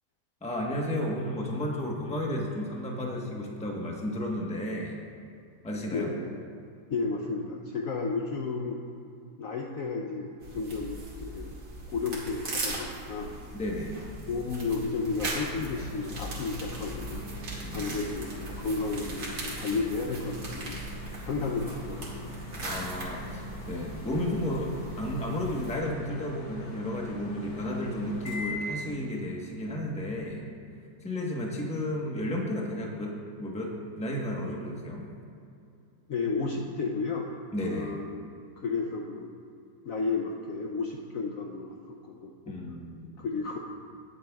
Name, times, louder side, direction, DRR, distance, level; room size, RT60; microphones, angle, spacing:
voice 1, 0.4-5.0 5.6-6.1 13.5-14.0 17.6-18.0 22.6-24.7 25.0-30.5 31.0-35.1 37.5-38.0 42.5-43.1, left 1 dB, 5° left, -1 dB, 0.8 m, -33 dB
voice 2, 5.9-6.3 6.9-8.8 9.4-11.5 11.9-13.3 14.3-17.2 17.7-20.8 21.2-22.4 36.1-37.3 37.6-38.2 38.6-39.3 39.8-42.5 43.2-43.6, left 4 dB, 65° left, 1 dB, 0.9 m, -32 dB
sound 1, 10.4-25.8, right 2 dB, 65° right, 2.5 m, -39 dB
sound 2, 13.8-30.3, left 1 dB, 90° left, 2.4 m, -42 dB
19.0 x 7.7 x 2.3 m, 2.6 s
omnidirectional pair, 1.9 m